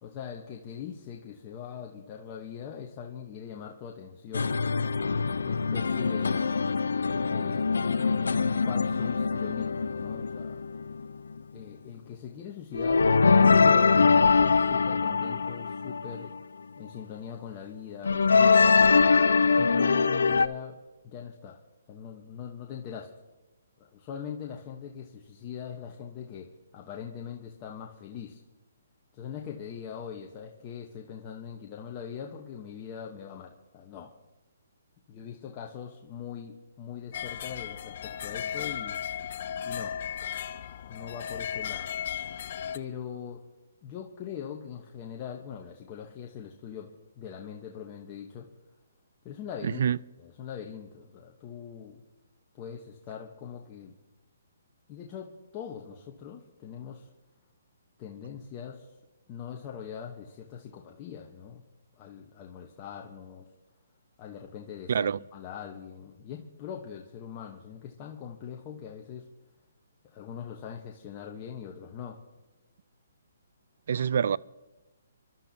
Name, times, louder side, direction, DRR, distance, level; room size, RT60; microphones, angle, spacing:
voice 1, 0.0-4.6 5.4-6.5 7.2-7.9 8.6-10.6 11.5-16.3 16.8-18.8 19.4-20.8 21.0-21.6 21.9-23.1 23.8-28.4 29.1-34.1 35.1-39.0 39.6-39.9 40.2-42.0 42.7-43.4 43.8-46.9 47.2-48.5 49.2-49.8 50.2-52.0 52.5-53.9 54.9-57.1 58.0-58.9 59.3-61.6 61.9-63.5 64.2-69.3 70.0-72.2, left 8 dB, 25° left, 1.0 m, -41 dB
sound 1, 4.3-11.4 12.7-16.4 18.0-20.5, left 5 dB, 85° left, 0.6 m, -23 dB
sound 2, 37.1-42.8, left 9 dB, 50° left, 0.6 m, -35 dB
voice 2, 49.6-50.0 64.9-65.2 73.9-74.4, right 8 dB, 60° right, 0.3 m, -26 dB
28.0 x 12.0 x 2.8 m
hypercardioid pair, 155°, 0 cm